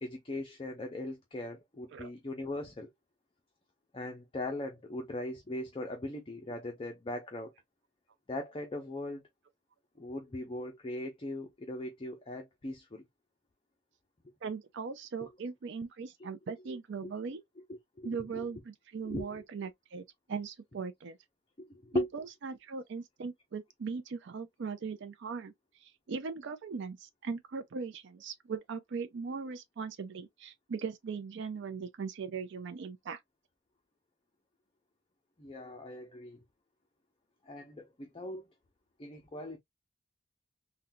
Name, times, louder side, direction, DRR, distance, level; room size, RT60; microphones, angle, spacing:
voice 1, 0.0-2.9 3.9-7.5 8.3-9.2 10.0-13.0 15.2-15.3 17.0-17.1 18.0-18.4 19.0-19.4 21.8-22.1 35.4-36.4 37.5-38.4 39.0-39.6, left 1 dB, 25° left, 0.6 m, -39 dB
voice 2, 14.4-17.4 18.0-21.2 21.9-25.5 25.8-33.2, right 5 dB, 65° right, 0.4 m, -39 dB
3.7 x 2.2 x 2.6 m
head